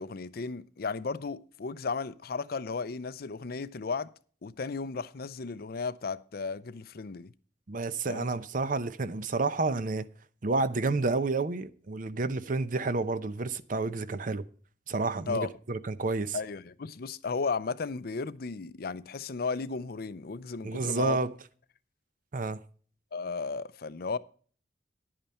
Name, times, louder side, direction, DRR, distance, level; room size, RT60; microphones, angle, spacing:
voice 1, 0.0-4.1 4.4-7.3 8.1-8.3 15.3-15.5 16.3-21.2 23.1-24.2, left 4 dB, 60° left, 0.5 m, -34 dB
voice 2, 7.7-10.1 10.4-14.4 14.9-16.4 20.6-21.3 22.3-22.6, right 3 dB, 50° right, 0.7 m, -30 dB
10.5 x 8.8 x 4.3 m
head